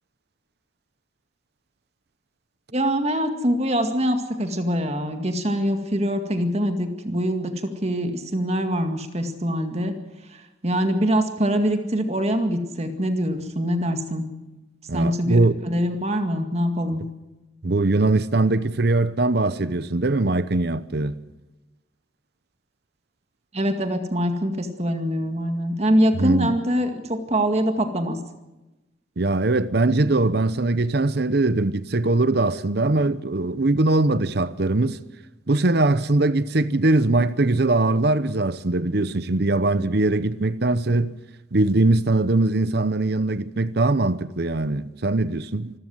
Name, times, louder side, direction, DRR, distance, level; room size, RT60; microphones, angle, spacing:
voice 1, 2.7-10.0 10.3-14.2 14.9-17.0 23.5-28.2, equal, 35° right, 2.1 m, -24 dB
voice 2, 14.9-15.6 17.6-21.2 26.2-26.6 29.2-35.0 35.5-41.1 41.5-45.7, right 2 dB, 60° right, 0.8 m, -21 dB
26.5 x 14.0 x 7.9 m
head